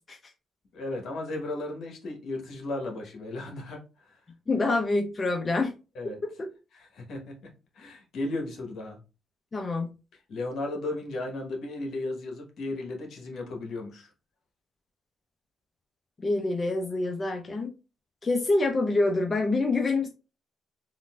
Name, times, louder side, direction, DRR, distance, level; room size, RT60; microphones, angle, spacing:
voice 1, 0.7-3.8 5.9-6.2 6.7-7.5 7.8-9.0 10.3-14.1, left 2 dB, 70° left, 1.0 m, -35 dB
voice 2, 4.5-5.7 6.2-6.3 9.5-9.9 16.2-17.7 18.2-20.1, left 2 dB, 30° left, 0.5 m, -26 dB
3.7 x 2.5 x 2.2 m
cardioid pair, 90°, 0 cm